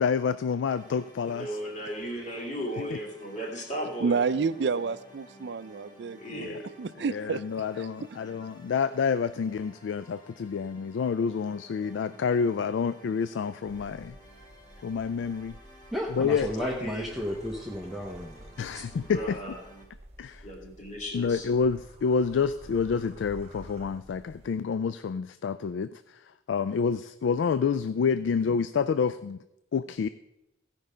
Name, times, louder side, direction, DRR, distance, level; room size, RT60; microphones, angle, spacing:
voice 1, 0.0-1.6 2.8-2.9 6.3-6.6 7.1-14.2 14.8-15.6 16.1-16.5 18.6-19.4 20.2-20.4 21.1-29.4 29.7-30.1, left 6 dB, 75° left, 0.3 m, -28 dB
sound 1, 0.7-19.9, right 1 dB, 25° left, 1.5 m, -54 dB
voice 2, 1.2-4.3 6.2-6.7 16.3-17.1 19.1-19.6 20.4-21.5, equal, 40° left, 2.2 m, -36 dB
voice 3, 4.0-6.5 6.8-7.4, right 5 dB, 60° right, 0.4 m, -29 dB
sound 2, 13.6-24.5, right 1 dB, 35° right, 1.1 m, -50 dB
voice 4, 15.9-18.4 18.7-18.9, equal, ahead, 0.7 m, -33 dB
15.5 x 5.4 x 5.0 m
head